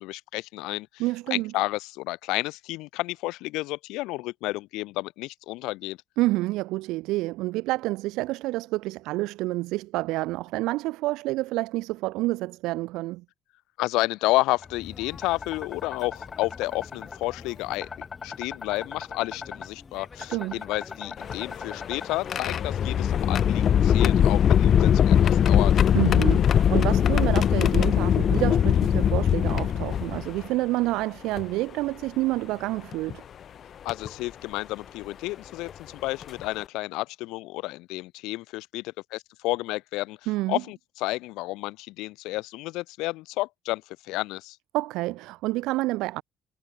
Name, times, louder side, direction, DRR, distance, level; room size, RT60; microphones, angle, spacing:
voice 1, 0.0-0.9 1.3-6.0 13.8-17.9 18.2-25.8 33.8-40.2 40.5-43.8 44.1-44.6, left 20 dB, 85° left, 1.3 m, -31 dB
voice 2, 1.0-1.5 6.2-13.2 20.3-20.6 25.9-33.2 40.3-40.6 44.7-46.2, right 19 dB, 85° right, 1.4 m, -28 dB
sound 1, 14.6-22.4, left 5 dB, 35° left, 6.3 m, -40 dB
sound 2, 21.2-30.5 31.4-31.5 32.9-33.1 33.9-34.1 35.7-35.8 36.2-36.4, left 9 dB, 55° left, 0.7 m, -21 dB
supercardioid pair, 80°, 0 cm